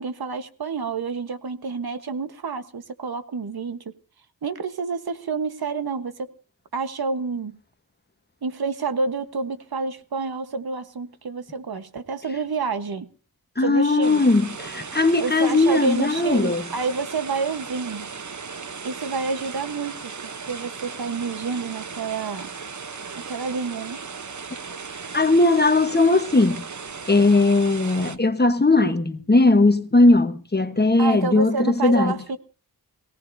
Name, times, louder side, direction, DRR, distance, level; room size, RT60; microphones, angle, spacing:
voice 1, 0.0-3.9 4.4-6.3 6.7-7.6 8.4-13.1 13.6-14.3 15.2-18.1 18.8-22.5 23.3-24.0 31.0-32.4, right 4 dB, 75° right, 1.5 m, -29 dB
voice 2, 13.6-16.6 25.1-26.6 27.1-32.1, left 2 dB, 25° left, 1.4 m, -18 dB
sound 1, 14.0-28.2, right 5 dB, 50° right, 1.1 m, -37 dB
22.0 x 17.5 x 2.8 m
wide cardioid pair, 90°, 37 cm